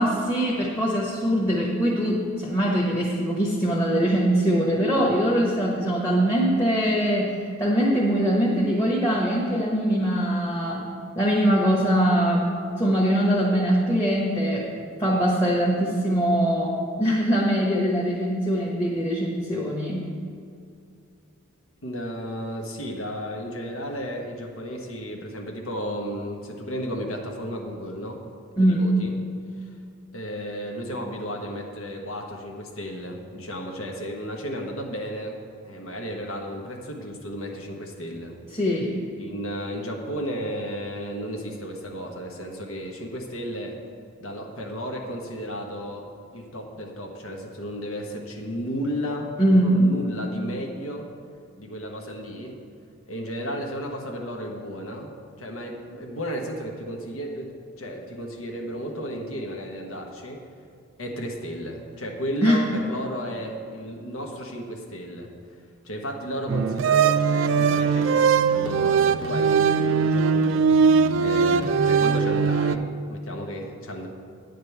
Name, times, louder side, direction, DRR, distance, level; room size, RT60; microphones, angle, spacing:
voice 1, 0.0-10.8 11.2-20.1 28.6-28.9 38.5-38.9 49.4-49.8 62.4-62.6, equal, 15° left, -4 dB, 1.1 m, -22 dB
voice 2, 21.8-28.2 28.6-29.1 30.1-38.4 39.2-43.8 44.2-46.1 46.3-49.3 49.6-51.1 51.6-52.6 53.1-55.1 55.4-60.4 61.0-65.3 65.8-74.1, equal, 90° left, 1 dB, 1.3 m, -33 dB
sound 1, 66.5-72.8, right 6 dB, 65° right, 0.4 m, -20 dB
9.7 x 5.3 x 8.0 m, 2.4 s
head